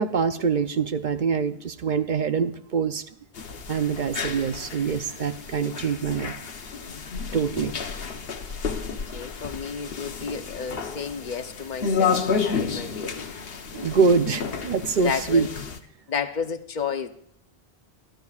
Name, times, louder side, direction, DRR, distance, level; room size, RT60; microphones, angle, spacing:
voice 1, 0.0-3.1 3.7-6.3 7.3-7.7 9.1-9.2 13.7-15.5, right 5 dB, 55° right, 10 dB, 0.7 m, -24 dB
sound 1, 3.3-15.8, left 5 dB, 70° left, 1.1 m, -31 dB
voice 2, 8.9-13.3 15.0-15.5 16.1-17.1, left 6 dB, 50° left, 9 dB, 0.9 m, -32 dB
22.0 x 14.0 x 2.4 m, 0.68 s
omnidirectional pair, 1.0 m